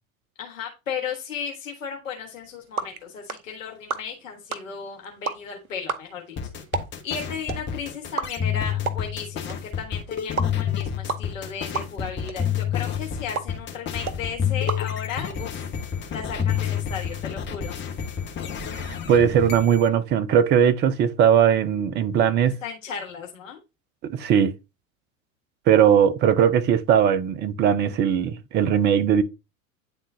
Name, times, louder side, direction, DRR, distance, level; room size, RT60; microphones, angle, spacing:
voice 1, 0.4-6.4 7.0-15.7 16.1-17.7 22.6-23.6, left 6 dB, 65° left, 1.5 m, -35 dB
sound 1, 2.3-15.6, right 4 dB, 85° right, 0.8 m, -36 dB
sound 2, 6.4-19.9, left 6 dB, 25° left, 1.2 m, -33 dB
sound 3, 8.4-9.6 10.4-11.6 12.4-13.6 14.4-15.6 16.4-17.6, left 10 dB, 10° left, 1.0 m, -28 dB
voice 2, 18.8-22.6 24.0-24.5 25.7-29.2, right 8 dB, 25° right, 0.6 m, -19 dB
9.8 x 3.7 x 2.7 m
figure-of-eight pair, 85°, 42 cm